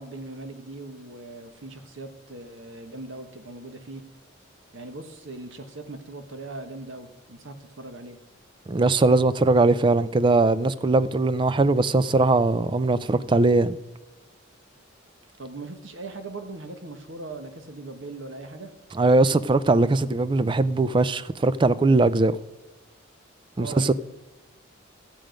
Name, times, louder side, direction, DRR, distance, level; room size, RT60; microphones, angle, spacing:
voice 1, 0.0-4.0 4.7-8.2 15.4-18.7 23.6-23.9, right 2 dB, 65° right, 1.2 m, -39 dB
voice 2, 8.7-13.8 19.0-22.4 23.6-23.9, right 2 dB, 25° right, 0.4 m, -20 dB
14.0 x 7.6 x 5.1 m
head